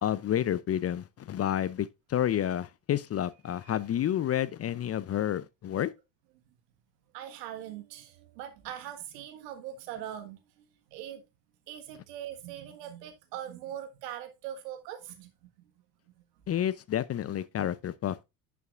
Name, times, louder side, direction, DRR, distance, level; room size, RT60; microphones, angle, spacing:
voice 1, 0.0-5.9 16.5-18.2, left 11 dB, 30° left, 0.5 m, -30 dB
voice 2, 7.1-11.2 11.7-15.5, right 11 dB, 75° right, 1.6 m, -41 dB
10.5 x 5.9 x 2.5 m
hypercardioid pair, 65°, 48 cm